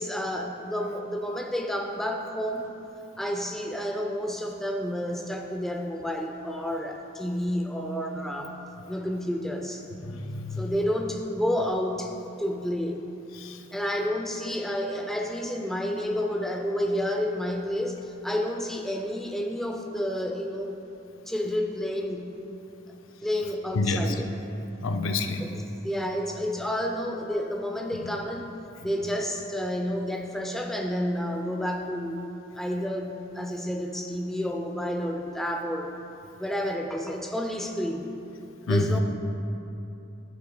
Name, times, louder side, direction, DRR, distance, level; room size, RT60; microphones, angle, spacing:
voice 1, 0.0-2.7 3.2-8.6 8.9-9.8 10.6-13.1 13.7-20.8 21.3-22.3 23.2-24.3 25.4-28.5 28.8-32.2 32.6-35.9 36.4-38.1 38.7-39.0, equal, ahead, 3 dB, 0.4 m, -30 dB
voice 2, 10.1-10.7 13.4-13.5 23.8-24.0 24.8-25.4 38.7-39.0, left 2 dB, 85° left, 6 dB, 0.5 m, -27 dB
9.6 x 8.2 x 2.2 m, 2.8 s
head